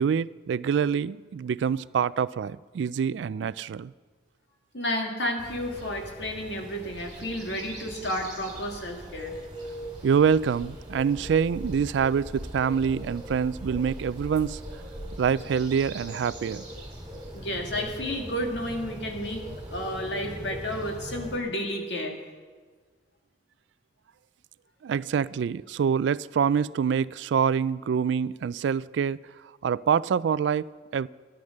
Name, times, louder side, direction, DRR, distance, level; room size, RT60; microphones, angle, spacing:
voice 1, 0.0-3.9 10.0-14.6 15.2-16.7 24.8-29.2 29.6-31.1, right 7 dB, 70° right, 0.3 m, -26 dB
voice 2, 4.7-9.3 17.3-22.2, equal, 65° left, 2.0 m, -31 dB
sound 1, 5.4-21.4, equal, 25° right, 2.8 m, -40 dB
13.0 x 10.0 x 6.5 m
head